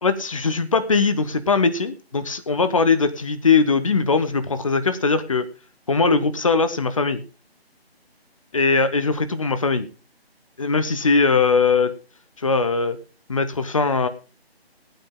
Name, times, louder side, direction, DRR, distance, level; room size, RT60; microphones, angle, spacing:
voice 1, 0.0-5.5 5.9-7.2 8.5-9.9 10.6-11.9 12.4-13.0 13.3-14.1, left 4 dB, 30° left, 11 dB, 1.1 m, -20 dB
17.0 x 9.1 x 3.7 m, 0.35 s
figure-of-eight pair, 155°, 32 cm